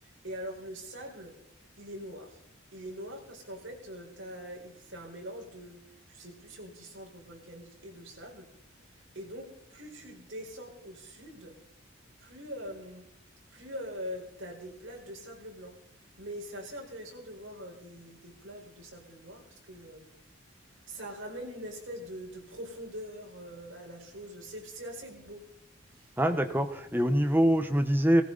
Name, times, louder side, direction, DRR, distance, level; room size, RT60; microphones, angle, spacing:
voice 1, 0.0-1.3 1.8-2.4 2.7-5.8 6.1-8.5 8.9-11.5 12.2-13.1 13.5-15.8 16.2-20.1 20.9-25.4 25.9-26.1, equal, 65° right, 0 dB, 4.8 m, -43 dB
voice 2, 26.2-28.2, equal, 10° right, 7 dB, 1.1 m, -24 dB
19.0 x 15.5 x 4.1 m, 0.72 s
head